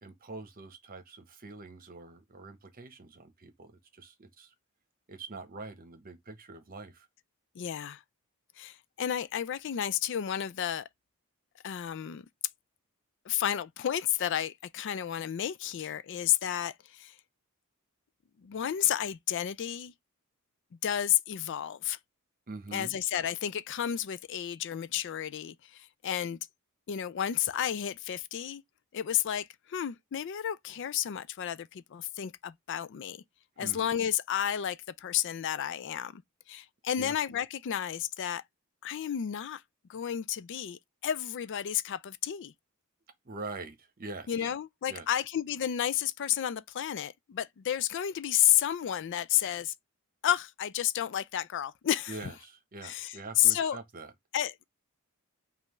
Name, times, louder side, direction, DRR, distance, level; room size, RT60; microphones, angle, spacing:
voice 1, 0.0-4.5 5.1-7.1 22.5-23.0 33.6-33.9 37.0-37.1 43.2-44.5 44.9-45.2 52.1-54.1, right 3 dB, 40° right, 0.9 m, -44 dB
voice 2, 7.6-8.0 8.6-10.9 11.6-12.3 13.3-17.2 18.4-19.9 20.8-22.0 22.7-26.4 26.9-28.6 28.9-33.2 33.6-36.2 36.5-38.4 38.8-39.6 39.9-42.5 44.3-49.7 50.2-52.1 52.8-53.8 54.3-54.6, left 10 dB, 55° left, 0.4 m, -31 dB
5.4 x 2.5 x 3.0 m
head